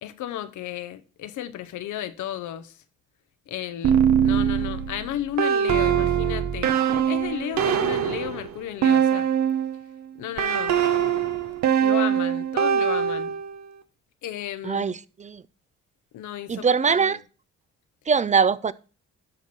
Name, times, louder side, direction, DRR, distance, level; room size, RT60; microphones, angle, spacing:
voice 1, 0.0-2.8 3.5-9.3 10.2-10.8 11.8-13.4 14.2-14.9 16.1-17.2, left 11 dB, 75° left, 0.9 m, -34 dB
sound 1, 3.8-9.8 10.4-13.6, right 8 dB, 65° right, 1.0 m, -22 dB
voice 2, 14.6-15.4 16.5-17.2 18.1-18.7, right 6 dB, 25° right, 0.4 m, -22 dB
12.0 x 4.5 x 4.2 m
cardioid pair, 90°, 30 cm